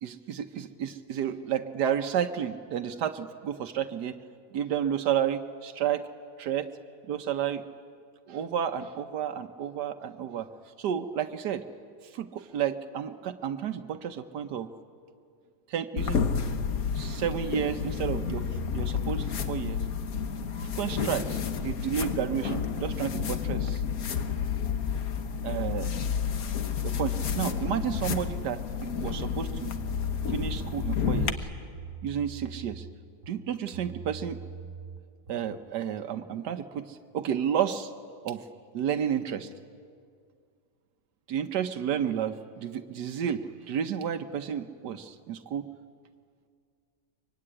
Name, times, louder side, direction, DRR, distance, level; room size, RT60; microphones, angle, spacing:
voice 1, 0.0-4.2 4.5-6.1 6.4-6.7 7.1-7.6 8.3-10.5 10.8-11.6 12.0-14.7 15.7-16.2 16.9-18.4 18.7-19.8 20.6-23.8 25.4-25.9 26.8-29.7 30.3-31.5 32.0-32.9 33.3-34.4 35.3-37.9 38.2-38.4 38.7-39.5 41.3-45.7, right 9 dB, 85° right, 7 dB, 1.5 m, -31 dB
sound 1, 16.0-31.3, left 6 dB, 65° left, 1.7 m, -30 dB
sound 2, 29.2-30.9 31.2-33.0 33.2-35.6, right 5 dB, 50° right, 2.2 m, -43 dB
24.0 x 24.0 x 9.9 m, 2.2 s
omnidirectional pair, 1.7 m